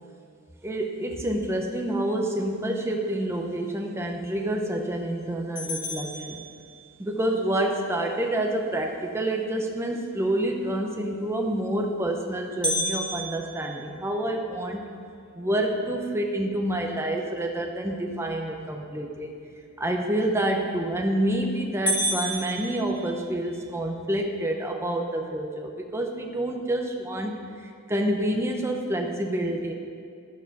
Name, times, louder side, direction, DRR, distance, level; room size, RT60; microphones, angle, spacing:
voice 1, 0.6-6.4 7.0-14.8 15.4-19.3 19.8-27.3 27.6-29.7, right 1 dB, 10° right, 1 dB, 0.7 m, -28 dB
sound 1, 5.6-7.1 12.6-14.8 15.3-15.4 15.9-16.0 16.7-17.0 20.6-21.0 21.4-21.5 21.9-23.6, equal, 5° left, 1.9 m, -31 dB
11.5 x 6.8 x 5.9 m, 2.2 s
head